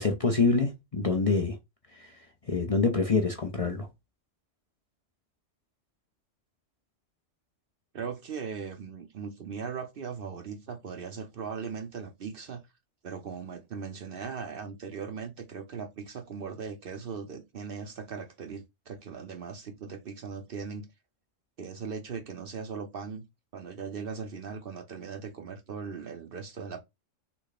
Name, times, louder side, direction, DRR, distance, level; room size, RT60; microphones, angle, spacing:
voice 1, 0.0-1.6 1.9-2.1 2.5-3.9, left 4 dB, 40° left, 0.6 m, -26 dB
voice 2, 7.9-12.6 13.0-20.9 21.6-23.2 23.5-26.8, right 6 dB, 55° right, 0.7 m, -39 dB
5.8 x 2.2 x 4.0 m
omnidirectional pair, 1.3 m